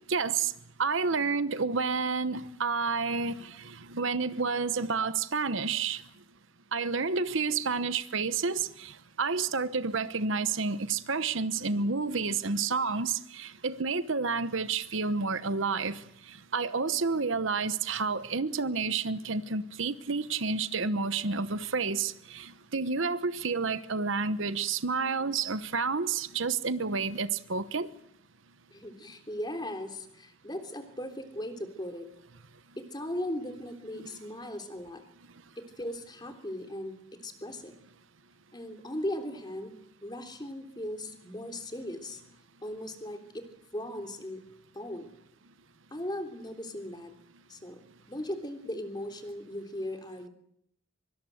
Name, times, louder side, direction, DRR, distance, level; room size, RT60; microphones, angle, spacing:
voice 1, 0.1-0.5 0.8-6.0 6.7-16.0 16.3-27.9 33.9-34.1, right 4 dB, 60° right, 1.0 m, -30 dB
voice 2, 28.7-32.1 32.8-35.0 35.6-37.7 38.5-39.7 40.0-42.2 42.6-43.5 43.7-44.4 44.7-45.1 45.9-47.1 47.5-47.8 48.1-50.3, left 1 dB, 20° left, 3.3 m, -38 dB
24.5 x 23.5 x 8.0 m
head